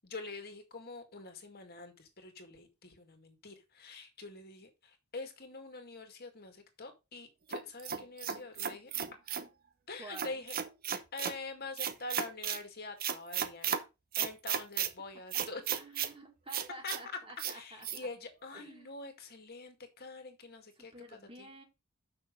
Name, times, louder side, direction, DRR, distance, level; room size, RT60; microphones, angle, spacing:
voice 1, 0.0-8.9 9.9-10.6 11.1-13.8 14.2-15.8 16.8-16.9 17.5-21.5, left 3 dB, 45° left, 2.1 m, -45 dB
sound 1, 7.5-9.5 10.1-11.4 11.8-12.6 13.0-13.8 14.1-14.9 15.3-16.1 16.5-17.0 17.4-17.5 17.8-18.0, right 8 dB, 40° right, 0.8 m, -34 dB
voice 2, 10.0-10.3 15.8-17.9 18.5-18.9 20.8-21.6, right 1 dB, 25° right, 2.0 m, -50 dB
7.2 x 6.1 x 5.1 m
head